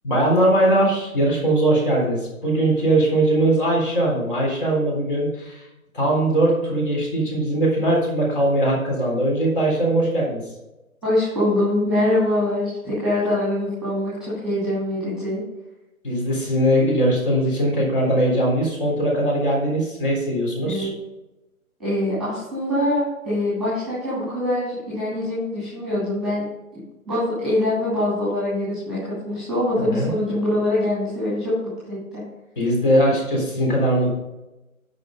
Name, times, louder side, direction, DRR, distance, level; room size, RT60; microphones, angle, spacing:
voice 1, 0.0-5.7 5.9-10.4 16.0-20.9 29.8-30.1 32.6-34.1, right 1 dB, 35° left, -3 dB, 3.8 m, -20 dB
voice 2, 11.0-15.4 20.6-20.9 21.8-26.4 27.1-31.5 31.9-32.2, left 1 dB, ahead, -10 dB, 2.3 m, -23 dB
10.0 x 5.7 x 5.2 m, 0.97 s
figure-of-eight pair, 145°, 43 cm